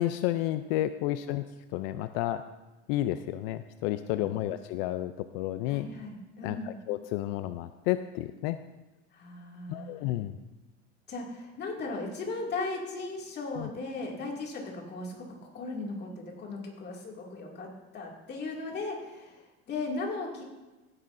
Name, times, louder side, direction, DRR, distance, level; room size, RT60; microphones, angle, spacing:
voice 1, 0.0-1.4 1.7-2.4 2.9-5.9 6.4-6.6 6.9-8.6 9.7-10.3 13.6-13.7, left 14 dB, 80° left, 11 dB, 0.5 m, -31 dB
voice 2, 4.1-4.5 5.7-6.8 9.1-10.0 11.1-15.3 15.5-20.4, left 3 dB, 35° left, -1 dB, 2.4 m, -37 dB
15.5 x 9.8 x 2.6 m, 1.1 s
cardioid pair, 135°, 29 cm